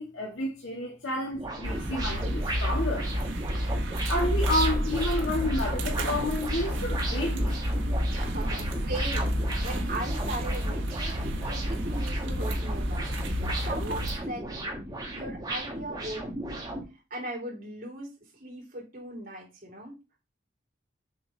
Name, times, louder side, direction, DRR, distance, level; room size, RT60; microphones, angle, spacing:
voice 1, 0.0-3.1 4.1-7.5, left 1 dB, 80° left, 2.1 m, -30 dB
sound 1, 1.3-16.8, right 2 dB, 20° right, 2.1 m, -36 dB
sound 2, 1.6-14.2, equal, 75° right, 1.6 m, -30 dB
voice 2, 8.1-11.2 11.4-14.8 15.1-16.7 16.9-19.9, right 1 dB, 45° right, 3.9 m, -39 dB
7.7 x 6.1 x 3.5 m
head